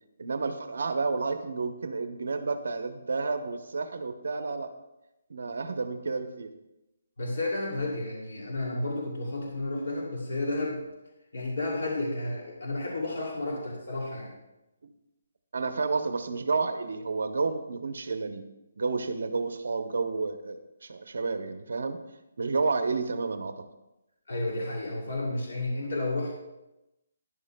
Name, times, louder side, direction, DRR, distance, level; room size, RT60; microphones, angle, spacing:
voice 1, 0.2-4.7 5.3-6.5 15.5-18.4 18.8-22.0 22.4-23.6, right 4 dB, 65° right, 8 dB, 0.8 m, -30 dB
voice 2, 7.2-10.8 11.3-14.4 24.3-26.3, left 2 dB, 70° left, -2 dB, 2.5 m, -31 dB
12.5 x 11.0 x 2.2 m, 0.95 s
hypercardioid pair, 175°, 0 cm